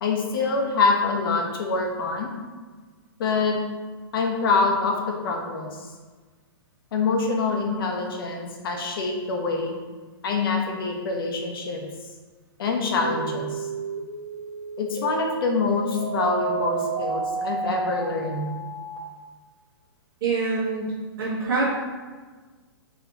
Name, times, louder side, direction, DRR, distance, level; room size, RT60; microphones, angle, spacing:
voice 1, 0.0-2.3 3.2-3.6 4.1-5.8 6.9-9.8 10.2-11.8 12.6-13.7 14.8-18.4, left 4 dB, 60° left, 1 dB, 0.8 m, -25 dB
sound 1, 13.0-19.0, right 5 dB, 20° right, 1.5 m, -31 dB
voice 2, 20.2-21.7, right 3 dB, 60° right, -6 dB, 1.3 m, -25 dB
4.0 x 2.9 x 2.8 m, 1.4 s
hypercardioid pair, 150°, 13 cm